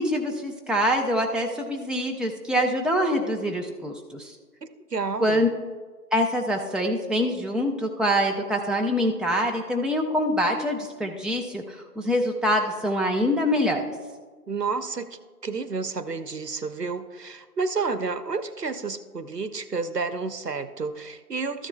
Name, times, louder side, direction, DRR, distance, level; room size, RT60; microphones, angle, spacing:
voice 1, 0.0-4.4 5.2-5.5 6.1-13.8, equal, ahead, 0 dB, 0.5 m, -25 dB
voice 2, 4.6-5.5 14.5-21.7, right 4 dB, 75° right, 12 dB, 0.7 m, -30 dB
13.5 x 10.0 x 2.2 m, 1.4 s
figure-of-eight pair, 175°, 49 cm